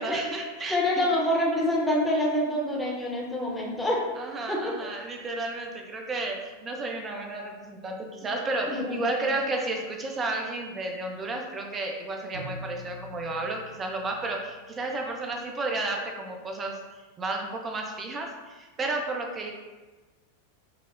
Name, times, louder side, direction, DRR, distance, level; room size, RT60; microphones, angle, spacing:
voice 1, 0.0-1.1 4.2-16.8 17.2-19.5, right 2 dB, 20° right, 2 dB, 0.5 m, -32 dB
voice 2, 0.7-4.0 4.5-4.7 8.7-9.3, left 1 dB, 5° left, -4 dB, 0.8 m, -26 dB
Bowed string instrument, 12.3-15.1, left 1 dB, 90° right, 0.6 m, -44 dB
4.8 x 2.0 x 2.4 m, 1.3 s
figure-of-eight pair, 90°, 0 cm